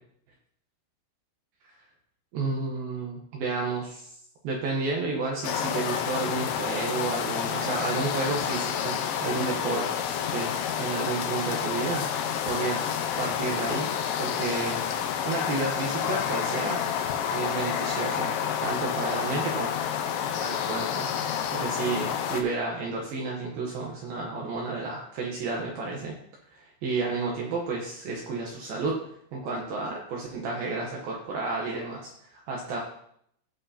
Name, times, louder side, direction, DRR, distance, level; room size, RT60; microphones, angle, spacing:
voice 1, 2.3-4.2 4.4-9.9 10.3-10.5 10.8-12.0 12.5-12.9 13.2-13.9 14.2-14.8 15.2-16.8 17.3-18.3 18.6-19.7 20.4-21.1 21.5-26.1 26.5-29.0 29.3-32.8, right 3 dB, 85° right, -1 dB, 2.1 m, -31 dB
sound 1, 5.4-22.4, left 8 dB, 85° left, 3.3 m, -29 dB
16.5 x 5.6 x 2.8 m, 0.68 s
omnidirectional pair, 5.8 m